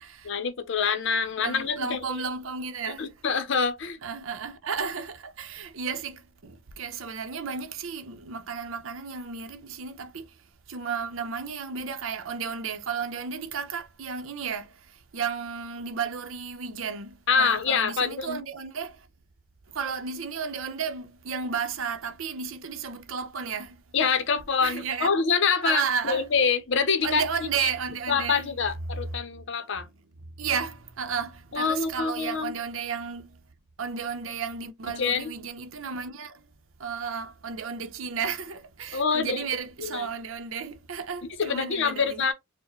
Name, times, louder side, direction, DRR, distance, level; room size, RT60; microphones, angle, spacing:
voice 1, 0.2-2.0 3.0-4.0 17.3-18.4 23.9-27.2 27.6-27.7 28.1-29.9 31.5-32.5 35.0-35.3 38.9-39.5 39.8-40.1 41.4-42.3, left 5 dB, 60° left, 0.6 m, -26 dB
voice 2, 1.4-3.1 4.0-10.3 10.7-19.1 19.7-23.8 24.6-25.1 25.6-26.2 27.0-28.5 30.4-33.4 33.8-36.4 36.8-42.2, right 6 dB, 75° right, 0.6 m, -33 dB
4.7 x 2.1 x 3.0 m
head